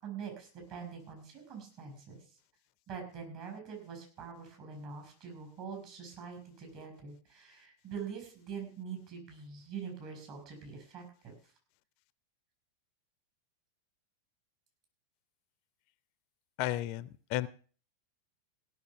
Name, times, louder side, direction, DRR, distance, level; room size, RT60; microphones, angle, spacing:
voice 1, 0.0-2.3 2.9-11.3, right 6 dB, 45° right, 2 dB, 6.6 m, -44 dB
voice 2, 16.6-17.5, left 15 dB, 45° left, 19 dB, 0.5 m, -33 dB
17.0 x 6.7 x 7.0 m, 0.43 s
figure-of-eight pair, 90°, 0 cm